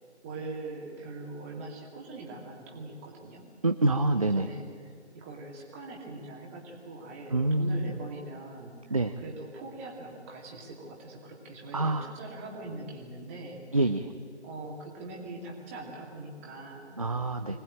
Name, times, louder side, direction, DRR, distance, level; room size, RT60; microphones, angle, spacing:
voice 1, 0.2-3.4 4.2-4.7 5.1-13.6 14.4-17.2 17.5-17.6, right 2 dB, 10° right, -2 dB, 2.3 m, -42 dB
voice 2, 3.6-4.5 7.3-8.0 8.9-9.1 11.7-12.2 13.7-14.1 17.0-17.6, right 2 dB, 30° right, 7 dB, 0.6 m, -26 dB
24.5 x 19.0 x 9.0 m, 2.2 s
figure-of-eight pair, 155°, 34 cm